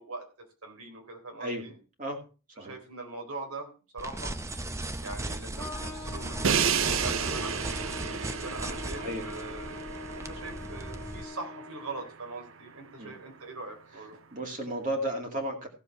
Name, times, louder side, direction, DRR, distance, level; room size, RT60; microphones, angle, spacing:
voice 1, 0.0-1.8 2.6-4.4 5.0-7.7 8.3-14.2, right 3 dB, 80° right, 4 dB, 3.7 m, -42 dB
sound 1, 4.0-11.2, right 2 dB, 15° right, 0.6 m, -37 dB
Trumpet, 5.5-12.1, left 3 dB, 5° left, 2.0 m, -43 dB
Crash cymbal, 6.4-12.4, right 7 dB, 60° right, 0.6 m, -32 dB
voice 2, 8.9-9.3 13.0-13.1 14.3-15.7, right 1 dB, 35° right, 2 dB, 2.5 m, -34 dB
15.5 x 7.4 x 4.5 m, 0.34 s
head